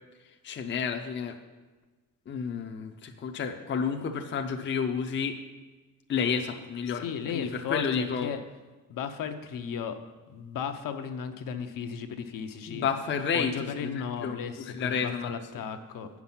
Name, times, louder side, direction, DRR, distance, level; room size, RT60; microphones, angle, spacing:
voice 1, 0.2-1.4 2.3-5.4 6.1-7.1 7.3-8.3 12.7-14.4 14.7-15.6, left 6 dB, 35° left, 5 dB, 0.5 m, -31 dB
voice 2, 7.0-8.4 8.9-10.0 10.3-12.9 13.3-16.1, left 7 dB, 65° left, 7 dB, 0.7 m, -35 dB
8.8 x 6.0 x 5.6 m, 1.3 s
cardioid pair, 155°, 35 cm